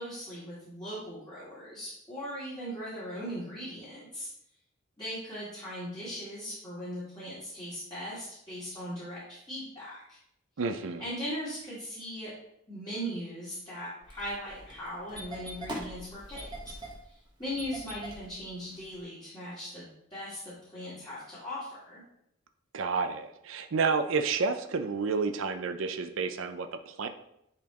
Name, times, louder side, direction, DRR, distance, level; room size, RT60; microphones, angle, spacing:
voice 1, 0.0-4.3 5.0-10.2 11.0-12.3 12.7-16.7 17.0-22.0, equal, 20° left, -11 dB, 2.3 m, -39 dB
voice 2, 10.6-11.0 22.7-27.1, right 4 dB, 70° right, 8 dB, 0.5 m, -30 dB
Engine starting, 14.0-19.0, right 1 dB, 20° right, 1.2 m, -42 dB
10.0 x 4.2 x 2.9 m, 0.77 s
head